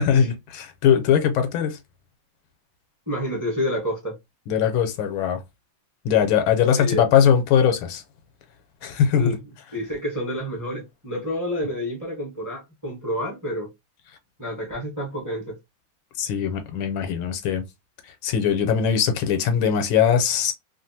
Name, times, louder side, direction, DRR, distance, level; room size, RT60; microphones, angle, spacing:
voice 1, 0.0-1.8 4.5-5.4 6.0-8.0 8.8-9.4 16.2-17.6 18.2-20.5, left 8 dB, 80° left, 1.4 m, -20 dB
voice 2, 3.1-4.1 6.8-7.1 9.1-9.4 9.7-13.7 14.4-15.5, left 1 dB, 15° right, 0.7 m, -29 dB
3.1 x 2.5 x 2.7 m
omnidirectional pair, 2.2 m